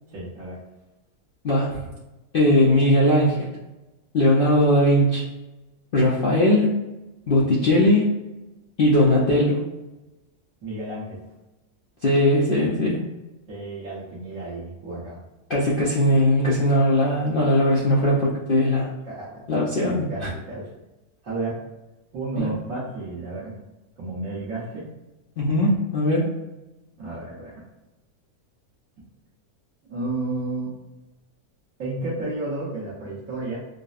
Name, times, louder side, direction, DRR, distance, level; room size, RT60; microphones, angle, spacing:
voice 1, 0.1-0.6 10.6-11.2 13.5-15.2 19.0-20.7 21.2-21.6 22.1-23.6 24.0-24.8 27.0-27.6 29.9-30.7 31.8-33.6, right 2 dB, 65° right, -10 dB, 1.3 m, -32 dB
voice 2, 1.4-1.8 2.3-3.5 4.1-5.2 5.9-6.8 7.3-8.1 8.8-9.7 12.0-13.1 15.5-18.9 19.5-20.3 22.4-22.5 25.4-26.3, left 1 dB, 60° left, -6 dB, 0.6 m, -19 dB
5.1 x 2.0 x 2.4 m, 1.0 s
omnidirectional pair, 1.6 m